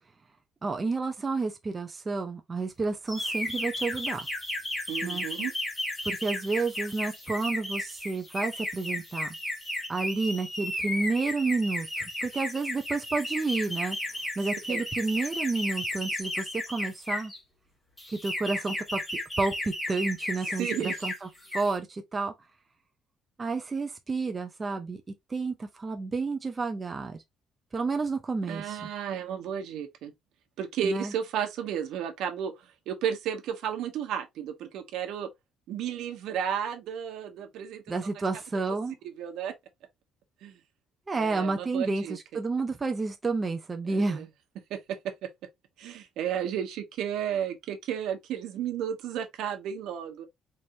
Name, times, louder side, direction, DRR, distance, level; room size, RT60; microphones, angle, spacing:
voice 1, 0.6-4.3 5.0-5.3 6.0-9.3 9.9-14.0 14.4-17.3 18.1-19.0 19.4-22.3 23.4-25.0 25.3-27.2 27.7-28.8 30.8-31.1 37.9-38.9 41.1-44.3, right 3 dB, 20° right, 0.5 m, -30 dB
sound 1, 3.1-17.4 18.0-21.2 21.4-21.8, left 1 dB, 15° left, 1.6 m, -34 dB
voice 2, 4.9-5.5 14.7-14.8 20.6-21.1 28.5-30.1 30.6-35.3 35.7-37.8 39.2-39.5 40.4-40.6 41.1-42.2 43.9-44.2 44.7-44.8 45.8-50.3, right 8 dB, 70° right, 1.1 m, -33 dB
4.5 x 3.3 x 2.7 m
cardioid pair, 175°, 0 cm